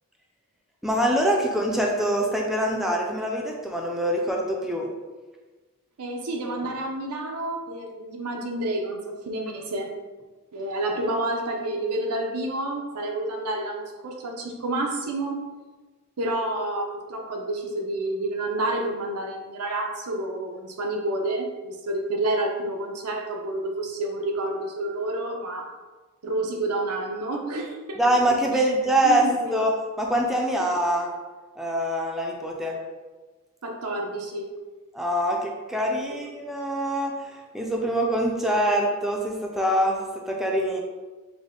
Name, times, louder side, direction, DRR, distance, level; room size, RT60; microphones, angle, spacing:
voice 1, 0.8-4.9 28.0-29.7 30.0-31.1 31.6-32.8 34.9-37.1 37.5-40.8, right 1 dB, ahead, -1 dB, 0.4 m, -24 dB
voice 2, 6.0-9.9 10.5-15.4 16.2-25.7 26.2-28.0 28.5-28.6 29.0-29.6 33.6-34.5, right 2 dB, 90° right, 1 dB, 0.7 m, -29 dB
5.1 x 2.1 x 3.7 m, 1.3 s
head